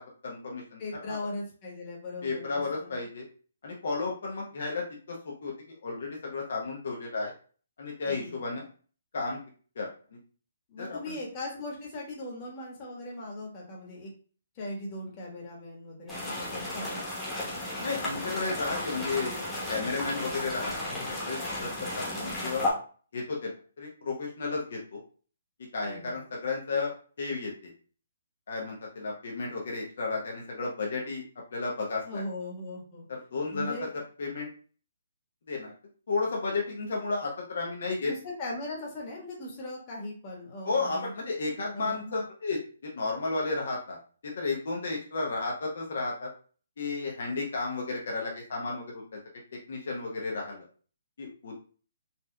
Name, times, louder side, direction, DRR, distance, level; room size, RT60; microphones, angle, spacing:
voice 1, 0.0-0.8 1.1-1.2 2.2-3.2 3.6-7.3 7.8-8.7 9.1-9.4 9.8-10.2 10.8-11.2 17.7-19.4 19.7-20.9 21.2-22.7 23.1-25.0 25.7-27.7 28.5-31.2 31.5-32.2 33.1-33.7 34.2-34.5 35.5-35.7 36.1-38.1 40.6-44.0 44.2-46.3 46.8-49.0 49.7-50.6 51.2-51.6, left 3 dB, 65° left, -1 dB, 0.8 m, -33 dB
voice 2, 0.8-2.9 8.0-8.4 10.7-14.1 14.5-17.0 25.8-26.2 32.0-33.0 33.5-33.9 38.0-41.1 41.7-42.2, left 1 dB, 30° left, -3 dB, 1.2 m, -39 dB
sound 1, 16.1-22.7, left 1 dB, 10° left, 1.1 m, -34 dB
4.1 x 2.4 x 2.2 m, 0.40 s
hypercardioid pair, 150°, 0 cm